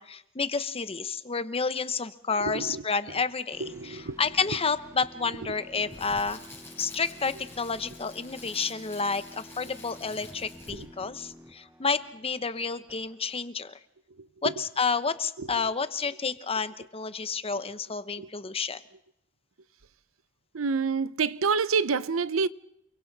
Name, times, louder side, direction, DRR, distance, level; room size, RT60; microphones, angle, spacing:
voice 1, 0.0-6.4 6.8-13.7 14.4-18.8, left 5 dB, 30° left, 1.0 m, -30 dB
voice 2, 2.4-2.8 3.6-4.2 5.5-5.6 10.7-10.9 14.1-14.5 15.4-15.7 18.2-18.3 20.5-22.5, right 5 dB, 75° right, 0.7 m, -29 dB
sound 1, 3.5-13.5, equal, 15° right, 1.0 m, -51 dB
Crackle, 5.5-11.0 11.3-11.5, left 2 dB, 10° left, 5.9 m, -48 dB
29.0 x 23.5 x 4.1 m
head